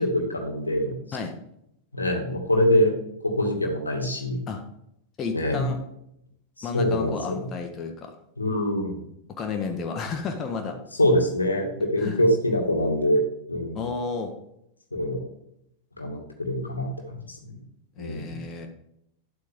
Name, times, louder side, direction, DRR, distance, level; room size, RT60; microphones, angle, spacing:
voice 1, 0.0-1.2 1.9-2.9 3.2-4.4 5.3-5.7 6.6-7.4 8.4-9.0 11.0-13.2 13.5-13.9 14.9-15.2 16.0-17.6 18.0-18.4, left 1 dB, 80° left, 2 dB, 2.3 m, -24 dB
voice 2, 5.2-5.8 6.6-8.1 9.4-10.8 12.0-12.2 13.7-14.3 18.0-18.7, left 5 dB, 30° left, 4 dB, 1.5 m, -32 dB
11.0 x 8.2 x 3.7 m, 0.77 s
figure-of-eight pair, 90°, 0 cm